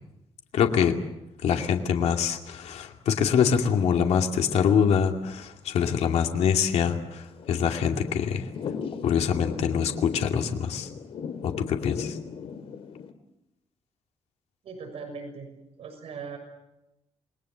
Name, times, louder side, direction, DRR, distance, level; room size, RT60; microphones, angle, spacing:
voice 1, 0.5-0.9 1.4-8.4 9.0-10.9 11.4-12.2, left 7 dB, 85° left, 4 dB, 2.5 m, -24 dB
Thunder / Rain, 6.1-13.1, left 6 dB, 65° left, 2.4 m, -39 dB
voice 2, 14.6-15.5 15.8-16.4, right 5 dB, 65° right, 5 dB, 6.4 m, -39 dB
28.0 x 21.5 x 8.0 m, 0.92 s
wide cardioid pair, 155°, 11 cm